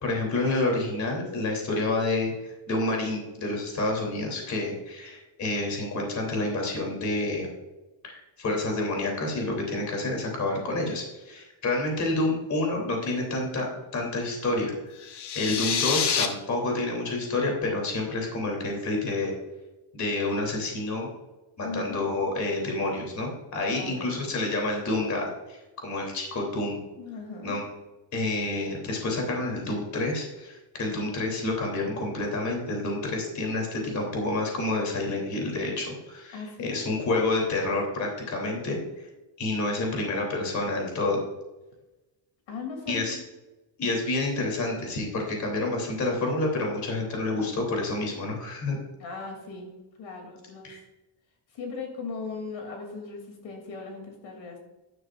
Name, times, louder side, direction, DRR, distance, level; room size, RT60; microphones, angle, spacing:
voice 1, 0.0-7.5 8.0-14.7 15.0-15.1 15.3-19.4 19.9-21.1 21.6-26.8 27.4-27.6 28.1-38.8 39.4-41.2 42.9-43.2 43.8-48.8 50.6-50.8, left 2 dB, 40° left, 0 dB, 3.2 m, -28 dB
sound 1, 15.0-16.3, left 7 dB, 60° left, 1.3 m, -27 dB
voice 2, 21.6-22.0 23.7-24.1 27.0-27.6 36.3-36.8 42.5-43.1 49.0-50.8 51.5-54.6, left 4 dB, 80° left, 2 dB, 3.0 m, -38 dB
12.5 x 11.5 x 2.5 m, 1.1 s
cardioid pair, 165°, 45 cm